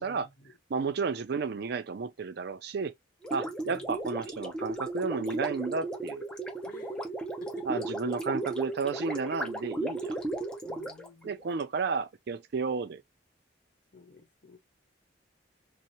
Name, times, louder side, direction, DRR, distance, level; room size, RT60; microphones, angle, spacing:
voice 1, 0.0-0.5 3.6-3.9 6.6-6.9 7.4-7.8 10.6-11.3 13.9-14.6, left 3 dB, 50° left, 0.9 m, -50 dB
voice 2, 0.7-2.9 3.3-6.2 7.7-10.2 11.2-13.0, right 5 dB, 60° right, 0.4 m, -32 dB
Gurgling, 3.2-11.6, right 2 dB, 5° left, 0.6 m, -35 dB
2.9 x 2.0 x 2.5 m
head